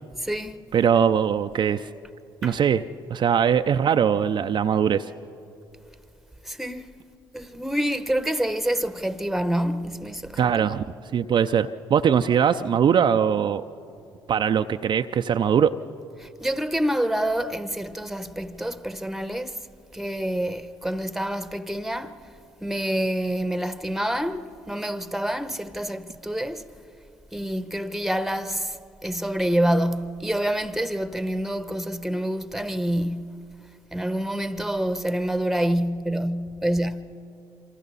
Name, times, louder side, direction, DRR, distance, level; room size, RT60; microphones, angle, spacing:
voice 1, 0.2-0.6 2.4-2.6 6.4-6.9 7.3-10.7 16.2-19.7 19.9-22.2 22.6-26.7 27.3-28.8 29.0-33.5 33.9-37.1, right 1 dB, ahead, 1.1 m, -27 dB
voice 2, 0.7-1.9 2.4-2.8 3.1-5.1 10.4-10.8 11.1-13.6 14.3-15.7, right 8 dB, 50° right, 0.6 m, -21 dB
27.0 x 25.0 x 4.1 m
hypercardioid pair, 55°, 10 cm